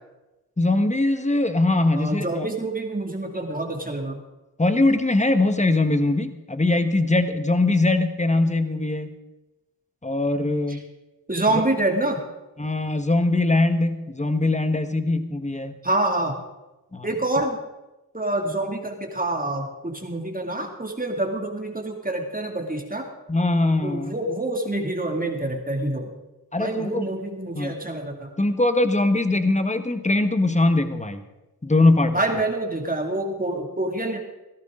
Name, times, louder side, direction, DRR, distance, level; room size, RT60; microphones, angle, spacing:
voice 1, 0.6-2.4 4.6-9.1 10.0-10.8 11.5-11.6 12.6-15.7 16.9-17.1 23.3-24.2 26.5-27.1 27.5-27.8 28.4-31.2 31.6-32.2, left 2 dB, 20° left, 9 dB, 1.4 m, -21 dB
voice 2, 1.9-4.2 10.7-10.8 11.3-12.2 15.8-16.4 17.0-17.6 18.1-23.1 23.8-26.1 26.6-28.3 32.1-34.2, right 2 dB, 20° right, 2 dB, 2.6 m, -26 dB
16.0 x 13.0 x 3.8 m, 1.0 s
cardioid pair, 45°, 38 cm